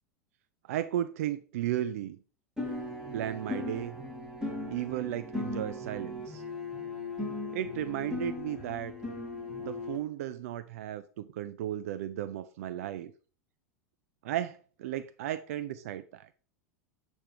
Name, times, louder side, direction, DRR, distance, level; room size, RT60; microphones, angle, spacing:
voice 1, 0.7-2.2 3.1-4.0 4.7-6.4 7.5-9.0 9.6-13.1 14.2-16.3, right 12 dB, 60° right, 0.5 m, -35 dB
sound 1, 2.6-10.0, left 2 dB, 10° right, 4.3 m, -38 dB
6.8 x 6.3 x 4.4 m
figure-of-eight pair, 85°, 9 cm